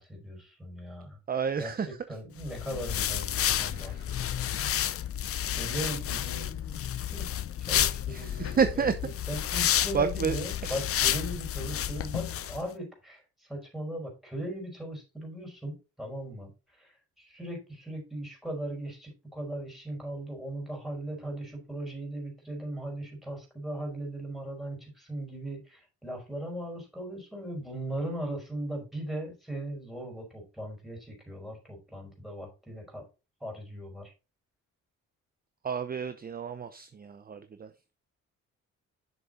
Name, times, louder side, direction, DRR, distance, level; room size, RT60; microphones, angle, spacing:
voice 1, 0.0-1.2 1.6-1.7 2.1-4.5 5.4-6.8 7.1-7.3 7.7-8.8 9.3-13.2 13.5-16.5 16.8-33.0 33.4-34.1, right 1 dB, ahead, 0 dB, 5.0 m, -38 dB
voice 2, 1.3-2.2 3.4-4.1 4.6-4.7 8.1-9.4 9.9-10.9 35.6-37.7, right 6 dB, 30° right, 10 dB, 0.7 m, -31 dB
sound 1, 2.4-12.6, left 11 dB, 50° left, 0.6 m, -30 dB
6.9 x 6.8 x 3.8 m, 0.30 s
cardioid pair, 90°, 30 cm